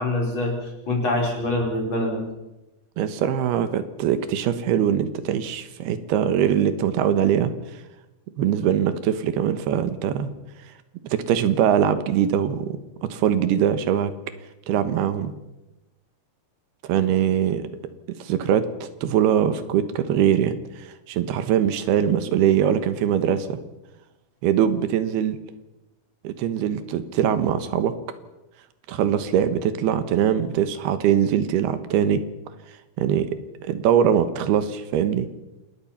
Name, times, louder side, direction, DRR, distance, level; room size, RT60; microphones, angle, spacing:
voice 1, 0.0-2.2, left 1 dB, 30° left, 0 dB, 4.8 m, -25 dB
voice 2, 3.0-7.5 8.4-10.3 11.0-14.1 14.7-15.3 16.8-17.7 18.2-23.6 24.4-25.4 26.2-27.9 28.9-32.2 33.0-33.3 33.6-35.3, right 9 dB, 90° right, 11 dB, 3.3 m, -22 dB
27.0 x 20.0 x 5.8 m, 1.0 s
omnidirectional pair, 4.4 m